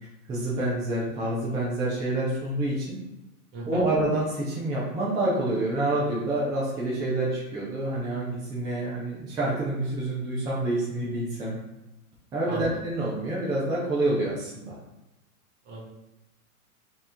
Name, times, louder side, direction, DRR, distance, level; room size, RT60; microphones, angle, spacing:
voice 1, 0.3-3.0 3.7-11.6 12.3-14.7, right 1 dB, 10° right, -6 dB, 0.3 m, -27 dB
voice 2, 3.5-3.9 12.4-12.8 15.6-15.9, right 1 dB, 35° right, -2 dB, 1.4 m, -34 dB
3.2 x 3.0 x 3.5 m, 0.97 s
hypercardioid pair, 125°, 44 cm